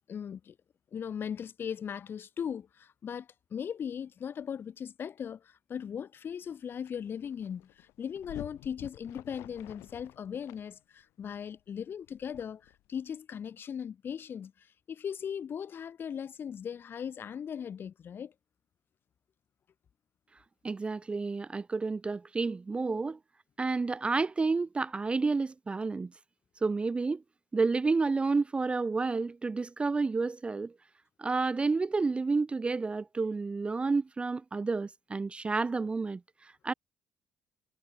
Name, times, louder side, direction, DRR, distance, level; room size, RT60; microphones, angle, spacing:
voice 1, 0.1-0.5 0.9-18.3, left 8 dB, 55° left, 1.5 m, -38 dB
sound 1, 6.5-6.6 6.9-13.1, left 17 dB, 80° left, 2.8 m, -50 dB
voice 2, 20.6-23.2 23.6-26.1 26.6-27.2 27.5-30.7 31.2-36.7, right 4 dB, 25° right, 0.3 m, -30 dB
supercardioid pair, 60°, 5 cm